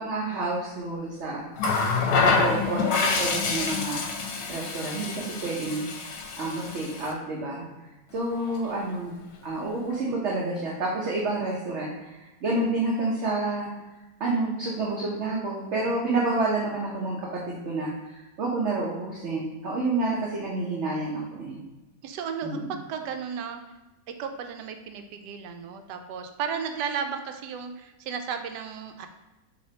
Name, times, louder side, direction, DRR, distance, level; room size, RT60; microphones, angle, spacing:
voice 1, 0.0-1.5 2.4-5.8 6.4-7.7 8.1-9.1 9.4-13.7 14.2-21.6 22.4-22.7, right 2 dB, 55° right, -4 dB, 0.9 m, -29 dB
Water tap faucet, 1.6-7.1 8.3-8.5, left 4 dB, 75° left, 1.1 m, -26 dB
voice 2, 22.0-23.6 24.2-29.1, right 7 dB, 85° right, 6 dB, 1.2 m, -34 dB
6.3 x 3.0 x 2.8 m, 1.1 s
omnidirectional pair, 1.8 m